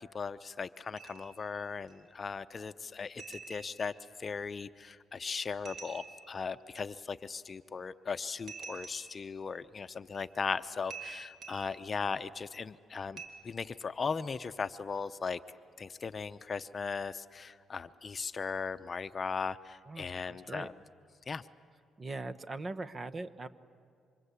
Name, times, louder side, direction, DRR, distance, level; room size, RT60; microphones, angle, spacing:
voice 1, 0.0-3.9 4.2-15.4 15.8-20.7 21.3-21.4, left 5 dB, 40° left, 12 dB, 0.8 m, -38 dB
sound 1, 1.0-1.4 1.9-2.0 3.2-4.0 5.7-6.4 8.5-9.3 10.1-10.3 10.9-11.8 13.2-13.3, right 5 dB, 60° right, 3.2 m, -47 dB
voice 2, 19.9-20.7 22.0-23.5, right 3 dB, 35° right, 12 dB, 1.1 m, -41 dB
28.0 x 25.5 x 8.3 m, 2.3 s
cardioid pair, 90°, 0 cm